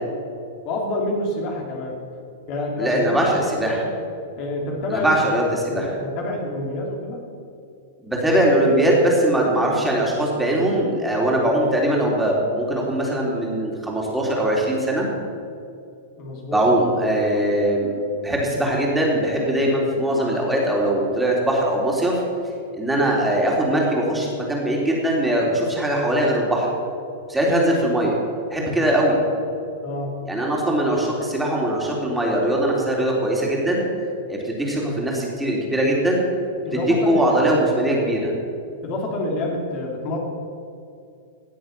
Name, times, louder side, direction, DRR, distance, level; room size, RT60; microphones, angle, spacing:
voice 1, 0.6-2.0 2.5-3.9 4.3-5.3 5.7-7.3 11.4-11.6 16.2-16.6 29.8-30.1 36.6-37.5 38.8-40.2, left 2 dB, 45° left, -1 dB, 3.0 m, -28 dB
voice 2, 2.8-3.8 4.9-5.9 8.0-15.1 16.5-17.9 18.2-22.2 22.8-26.7 27.3-28.2 28.5-29.2 30.3-33.8 34.3-36.3 37.1-38.3, right 1 dB, 10° right, -3 dB, 3.6 m, -21 dB
18.0 x 7.8 x 6.9 m, 2.5 s
figure-of-eight pair, 100°, 0 cm